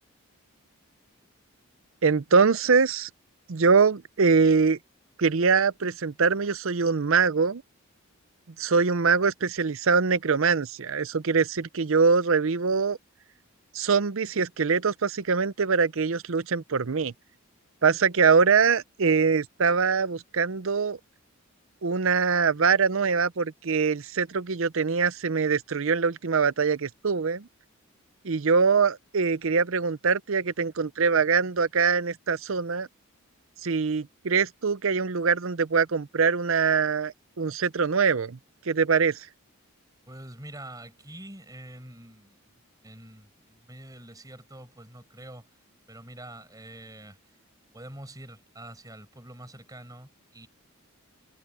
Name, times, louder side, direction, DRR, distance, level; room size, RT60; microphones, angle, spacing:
voice 1, 2.0-3.1 3.5-4.8 5.2-7.6 8.6-13.0 13.7-17.1 17.8-21.0 21.8-27.5 28.2-32.9 33.6-38.4 38.7-39.3, right 5 dB, 60° right, 0.6 m, -23 dB
voice 2, 40.1-42.4 42.8-45.5 45.9-47.2 47.7-50.5, right 1 dB, 15° right, 6.3 m, -45 dB
head